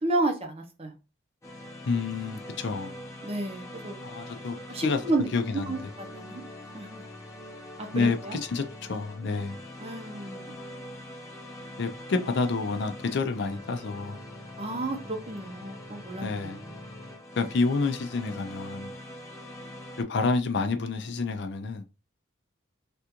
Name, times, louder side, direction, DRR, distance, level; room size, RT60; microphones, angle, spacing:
voice 1, 0.0-0.9 3.2-4.0 4.7-5.3 5.7-6.4 6.7-7.0 7.8-8.4 9.8-10.5 14.6-16.5, right 2 dB, 30° right, 0.7 m, -31 dB
sound 1, 1.4-20.0, left 1 dB, 15° left, 0.6 m, -43 dB
voice 2, 1.9-2.9 4.0-5.0 5.3-5.9 7.9-9.6 11.8-14.2 16.2-16.6 17.4-18.9 20.1-21.8, left 4 dB, 55° left, 0.4 m, -29 dB
3.4 x 2.5 x 2.8 m
head